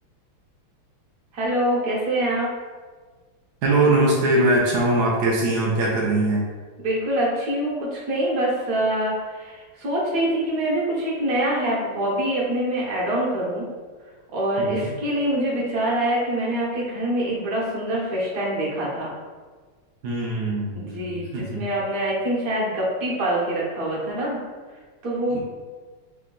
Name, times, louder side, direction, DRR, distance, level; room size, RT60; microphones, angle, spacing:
voice 1, 1.3-2.5 6.8-13.7 14.3-19.1 20.7-24.4 25.0-25.4, right 1 dB, 55° right, -5 dB, 1.0 m, -25 dB
voice 2, 3.6-6.5 14.6-14.9 20.0-21.6 25.3-25.4, right 2 dB, 85° right, -4 dB, 0.8 m, -22 dB
3.7 x 2.2 x 3.7 m, 1.4 s
omnidirectional pair, 2.4 m